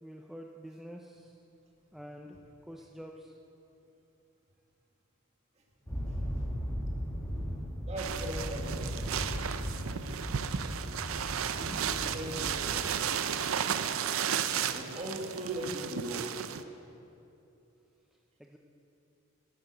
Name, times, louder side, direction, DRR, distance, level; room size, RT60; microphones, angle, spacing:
voice 1, 0.0-1.3 1.9-2.4 2.7-3.3 18.4-18.6, equal, ahead, 1 dB, 0.5 m, -47 dB
sound 1, 5.9-13.0, equal, 15° left, 1.6 m, -37 dB
voice 2, 6.1-6.5 6.9-7.0 7.9-9.1 11.5-13.9 14.7-16.4, right 1 dB, 30° right, 0 dB, 1.8 m, -40 dB
sound 2, 8.0-16.6, right 8 dB, 80° right, 0.5 m, -34 dB
12.5 x 8.8 x 6.6 m, 2.8 s
head